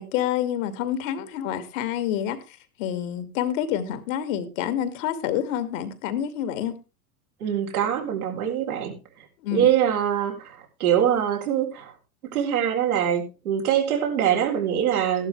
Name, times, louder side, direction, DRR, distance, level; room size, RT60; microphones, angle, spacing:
voice 1, 0.0-2.4 2.8-6.7 9.4-9.7, left 10 dB, 60° left, 2.5 m, -27 dB
voice 2, 7.4-11.9 12.2-15.3, right 10 dB, 75° right, 4.1 m, -24 dB
14.5 x 11.5 x 3.4 m
hypercardioid pair, 100°, 44 cm